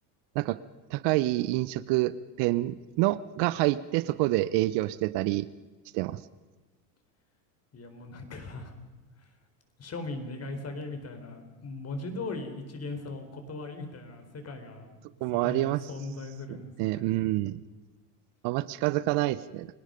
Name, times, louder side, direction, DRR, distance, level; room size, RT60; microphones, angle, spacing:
voice 1, 0.9-5.5 5.9-6.2 15.2-15.8 16.8-17.6 18.4-19.7, right 17 dB, 60° right, 17 dB, 0.9 m, -27 dB
voice 2, 7.7-8.7 9.2-9.3 9.8-15.0 15.3-17.1, left 2 dB, 30° left, 7 dB, 4.3 m, -39 dB
29.5 x 18.5 x 5.2 m, 1.2 s
supercardioid pair, 95°, 47 cm